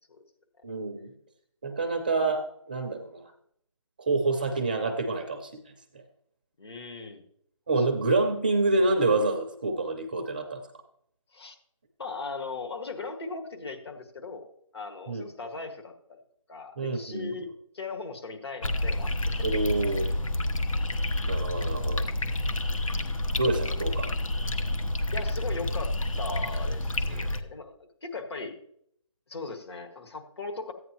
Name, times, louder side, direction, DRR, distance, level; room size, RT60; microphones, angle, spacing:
voice 1, 0.6-1.1 1.6-3.3 4.0-5.6 7.7-10.6 15.1-15.2 16.8-17.3 19.4-20.1 21.2-22.1 23.4-24.1 27.1-27.3, right 3 dB, 15° right, 4 dB, 0.5 m, -27 dB
voice 2, 6.6-7.2 7.8-7.9 11.3-11.6 12.0-14.5 14.7-16.2 16.5-17.5 17.7-19.5 25.1-28.6 29.3-30.7, left 3 dB, 50° left, 3 dB, 1.9 m, -38 dB
sound 1, 18.6-27.4, left 1 dB, 80° left, 1.1 m, -29 dB
15.0 x 9.2 x 3.0 m, 0.70 s
figure-of-eight pair, 165°, 17 cm